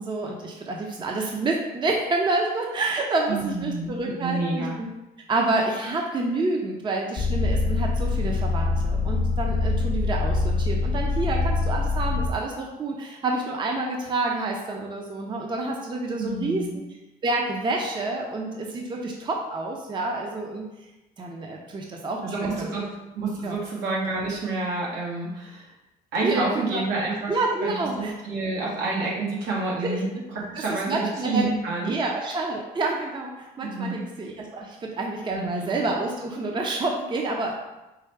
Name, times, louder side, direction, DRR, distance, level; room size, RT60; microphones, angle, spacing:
voice 1, 0.0-4.9 5.3-16.6 17.2-20.7 21.2-22.7 23.4-23.6 26.2-26.8 27.3-28.1 29.8-30.0 30.5-31.5 31.8-37.6, right 2 dB, 30° right, 0 dB, 0.6 m, -28 dB
voice 2, 3.3-4.7 16.2-16.7 22.2-22.8 23.1-25.7 26.1-27.4 27.6-30.0 30.3-31.9 33.6-34.0 35.3-35.7, right 3 dB, 85° right, -4 dB, 1.4 m, -28 dB
sound 1, 7.2-12.3, left 3 dB, 25° left, 0.4 m, -24 dB
4.6 x 2.2 x 4.5 m, 0.99 s
cardioid pair, 110°, 17 cm